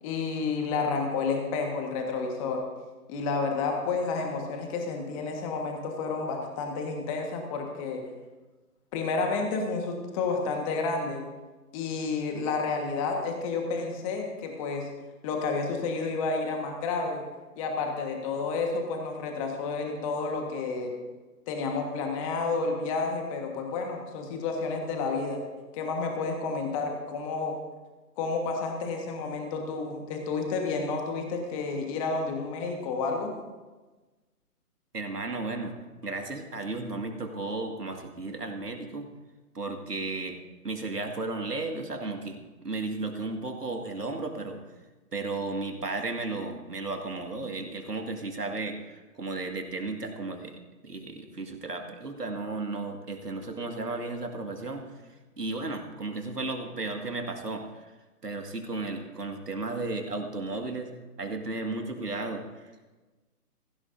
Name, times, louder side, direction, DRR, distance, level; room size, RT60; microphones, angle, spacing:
voice 1, 0.0-2.6 3.1-8.0 8.9-11.2 11.7-14.9 15.2-17.2 17.6-20.9 21.5-25.4 25.7-27.6 28.2-33.3, left 4 dB, 20° left, 2 dB, 1.5 m, -30 dB
voice 2, 34.9-35.8 36.0-39.1 39.5-40.4 40.6-44.6 45.1-54.8 55.4-57.9 58.2-62.5, right 3 dB, 85° right, 4 dB, 2.0 m, -34 dB
16.0 x 15.5 x 2.7 m, 1.2 s
figure-of-eight pair, 135°, 47 cm